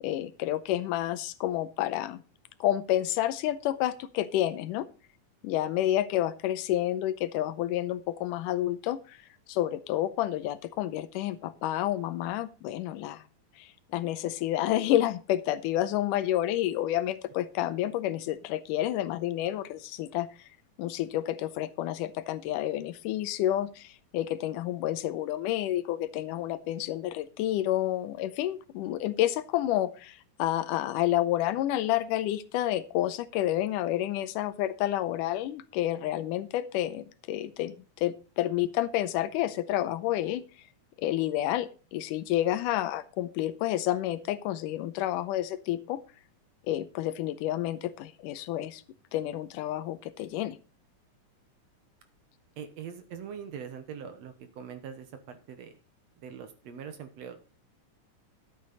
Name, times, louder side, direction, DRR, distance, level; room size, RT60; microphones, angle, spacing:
voice 1, 0.0-2.2 2.6-4.9 5.4-9.2 9.5-13.2 13.6-20.3 20.8-40.4 41.0-46.0 46.7-48.8 49.1-50.6, left 13 dB, 85° left, 14 dB, 2.3 m, -29 dB
voice 2, 52.6-55.8 56.2-57.4, right 7 dB, 65° right, 9 dB, 2.0 m, -42 dB
11.0 x 8.7 x 4.0 m, 0.34 s
omnidirectional pair, 3.6 m